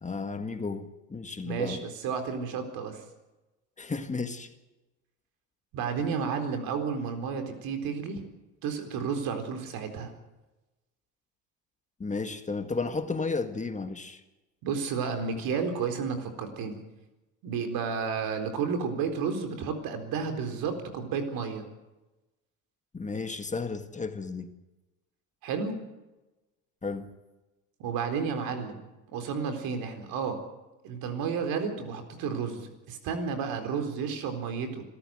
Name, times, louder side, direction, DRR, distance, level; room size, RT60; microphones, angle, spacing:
voice 1, 0.0-1.8 3.8-4.5 12.0-14.2 22.9-24.5 26.8-27.1, left 4 dB, 20° left, 1.9 m, -33 dB
voice 2, 1.4-3.0 5.7-8.2 8.6-10.1 14.6-16.8 17.4-21.7 25.4-25.8 27.8-28.8 29.1-30.4 30.8-34.8, right 6 dB, 70° right, 4.3 m, -32 dB
26.0 x 13.5 x 7.9 m
supercardioid pair, 90°, 37 cm